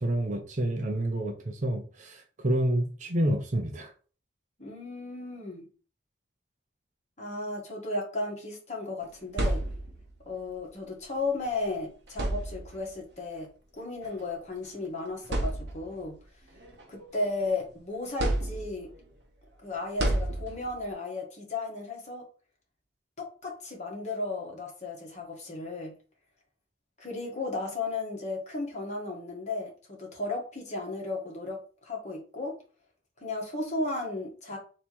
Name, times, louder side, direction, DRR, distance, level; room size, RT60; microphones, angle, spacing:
voice 1, 0.0-3.9, right 1 dB, 40° right, 0.7 m, -28 dB
voice 2, 4.6-5.6 7.2-9.6 10.2-13.5 13.8-16.1 16.9-18.9 19.6-22.2 23.2-25.9 27.0-32.5 33.2-34.6, left 2 dB, 40° left, 1.4 m, -34 dB
sound 1, 9.0-10.2 11.4-11.6 12.1-12.9 14.0-14.2 14.7-14.8 15.2-16.1 16.6-17.6 18.2-19.0 20.0-20.9, right 1 dB, 65° right, 0.9 m, -31 dB
3.4 x 2.8 x 4.5 m
head